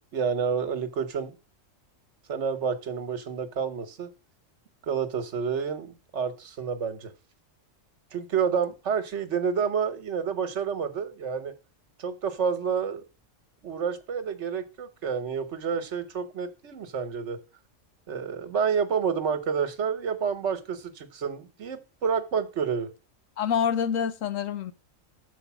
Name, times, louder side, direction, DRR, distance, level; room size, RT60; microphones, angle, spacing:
voice 1, 0.1-1.3 2.3-4.1 4.8-7.1 8.1-11.5 12.0-13.0 13.6-17.4 18.1-22.9, right 6 dB, 65° right, 1.4 m, -29 dB
voice 2, 23.4-24.7, left 8 dB, 85° left, 1.2 m, -26 dB
6.8 x 5.1 x 7.0 m
omnidirectional pair, 1.3 m